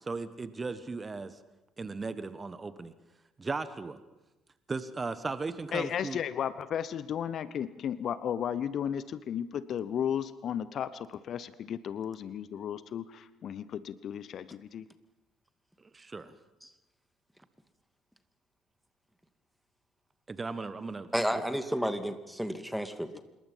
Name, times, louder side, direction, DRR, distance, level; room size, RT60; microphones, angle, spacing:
voice 1, 0.1-1.4 1.8-2.9 3.4-4.0 4.7-6.2 15.9-16.3 20.3-21.1, right 4 dB, 25° right, 13 dB, 1.4 m, -36 dB
voice 2, 5.7-14.9 23.1-23.2, left 9 dB, 50° left, 16 dB, 1.0 m, -34 dB
voice 3, 21.1-23.2, equal, ahead, 9 dB, 2.3 m, -32 dB
27.0 x 21.5 x 5.6 m, 1.0 s
figure-of-eight pair, 50°, 0 cm